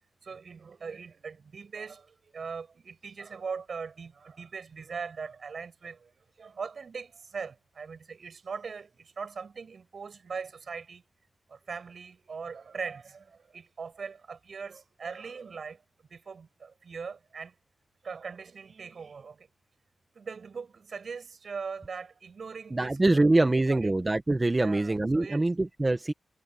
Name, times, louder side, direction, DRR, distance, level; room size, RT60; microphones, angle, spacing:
voice 1, 0.2-6.1 6.4-11.0 11.5-15.8 16.1-17.5 18.0-19.5 20.1-23.9 24.6-25.4, right 5 dB, 65° right, 7.2 m, -40 dB
voice 2, 22.7-26.1, right 2 dB, 25° right, 1.4 m, -24 dB
cardioid pair, 65°, 0 cm